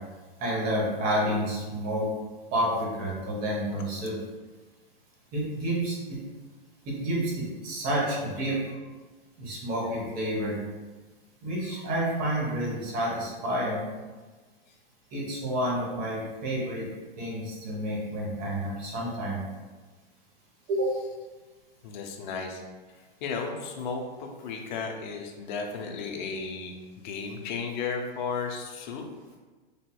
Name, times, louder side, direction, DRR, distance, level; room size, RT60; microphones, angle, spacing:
voice 1, 0.4-2.1 2.5-4.1 5.3-6.2 6.8-8.6 9.4-10.6 11.4-13.8 15.1-16.9 17.2-19.4 20.7-20.9, right 1 dB, 30° right, -4 dB, 0.9 m, -29 dB
voice 2, 21.8-22.6 23.2-29.0, left 5 dB, 50° left, 2 dB, 0.5 m, -34 dB
3.3 x 2.7 x 2.2 m, 1.3 s
hypercardioid pair, 130°, 30 cm